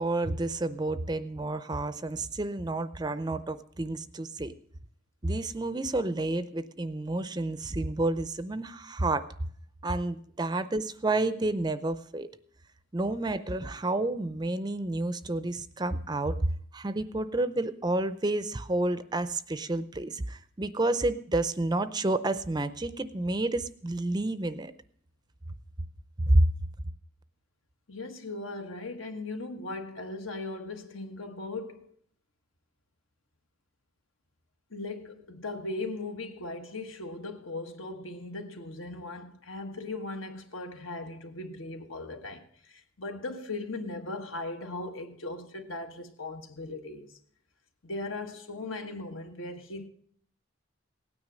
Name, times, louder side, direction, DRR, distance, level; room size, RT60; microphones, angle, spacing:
voice 1, 0.0-4.5 5.2-9.3 9.8-12.3 12.9-16.4 16.7-24.7 26.3-26.5, right 2 dB, 20° right, 0.5 m, -29 dB
voice 2, 27.9-31.9 34.7-47.1 47.8-49.9, left 2 dB, 75° left, 1.5 m, -38 dB
17.0 x 9.6 x 6.3 m
head